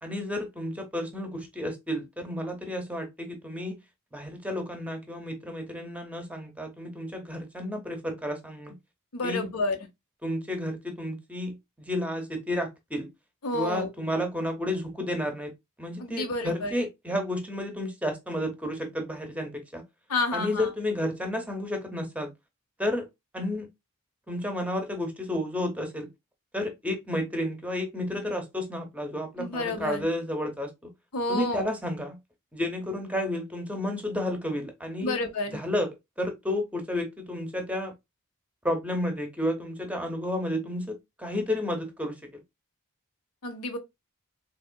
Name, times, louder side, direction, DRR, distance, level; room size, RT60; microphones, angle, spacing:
voice 1, 0.0-3.8 4.1-8.8 9.2-9.5 10.2-13.1 13.5-15.5 15.8-19.8 20.3-22.3 22.8-23.1 23.3-23.7 24.3-26.1 26.5-30.9 31.3-32.2 32.5-35.2 35.5-35.9 36.2-37.9 38.6-42.4, left 1 dB, 5° right, 0.7 m, -31 dB
voice 2, 9.1-9.8 13.4-13.9 16.0-16.7 20.1-20.7 29.4-30.1 31.1-31.7 35.0-35.6 43.4-43.8, left 2 dB, 85° left, 0.9 m, -29 dB
3.5 x 3.3 x 2.2 m
head